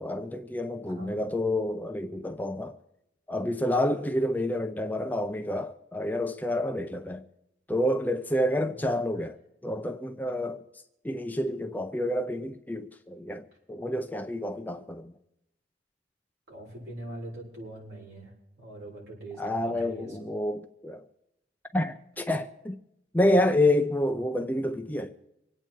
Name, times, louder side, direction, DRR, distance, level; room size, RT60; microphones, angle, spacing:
voice 1, 0.0-2.8 3.3-7.2 7.7-9.4 9.6-10.6 11.0-15.1 19.4-21.0 21.7-22.8 23.1-25.1, left 1 dB, 10° left, 0.6 m, -28 dB
voice 2, 0.8-1.3 8.8-9.2 16.5-20.3, right 1 dB, 65° right, 7.3 m, -43 dB
26.0 x 8.9 x 4.6 m
head